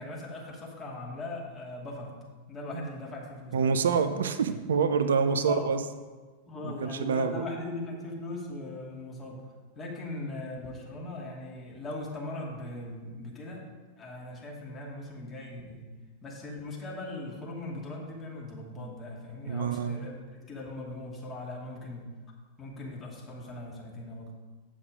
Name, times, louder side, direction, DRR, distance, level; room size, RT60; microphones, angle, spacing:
voice 1, 0.0-2.1 2.5-3.9 5.2-5.7 6.5-9.4 9.7-13.6 14.0-15.9 16.2-22.1 22.6-24.3, left 2 dB, 25° left, -3 dB, 2.4 m, -39 dB
voice 2, 3.5-5.8 6.6-7.4 19.5-20.1, right 6 dB, 65° right, 10 dB, 0.5 m, -27 dB
8.5 x 6.2 x 5.1 m, 1.4 s
figure-of-eight pair, 90°, 0 cm